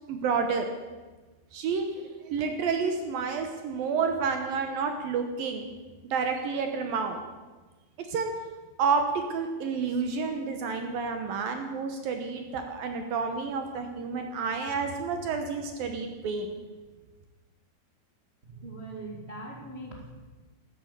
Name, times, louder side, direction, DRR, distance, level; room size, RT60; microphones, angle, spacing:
voice 1, 0.1-0.7 1.5-5.7 6.1-7.2 8.0-8.3 8.8-16.5, right 5 dB, 70° right, 5 dB, 2.5 m, -30 dB
voice 2, 18.5-20.1, right 2 dB, 40° right, -1 dB, 0.8 m, -41 dB
13.5 x 13.0 x 8.2 m, 1.3 s
omnidirectional pair, 5.2 m